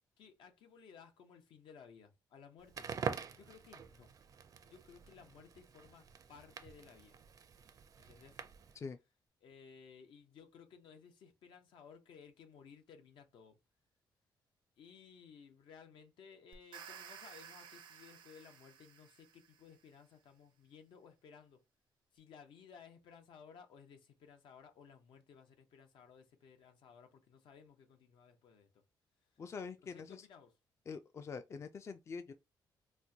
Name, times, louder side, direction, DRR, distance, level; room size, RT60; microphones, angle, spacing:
voice 1, 0.2-2.9 3.3-4.1 4.6-7.2 8.0-8.4 9.4-13.6 14.8-21.6 22.1-28.8 29.8-30.6, left 6 dB, 80° left, 0.8 m, -58 dB
Crackle, 2.6-8.8, right 6 dB, 45° right, 0.5 m, -46 dB
sound 1, 16.5-19.7, right 8 dB, 90° right, 0.7 m, -54 dB
voice 2, 29.4-30.3 30.9-32.3, left 5 dB, 35° left, 0.3 m, -45 dB
4.3 x 2.2 x 2.7 m
cardioid pair, 120°, 8 cm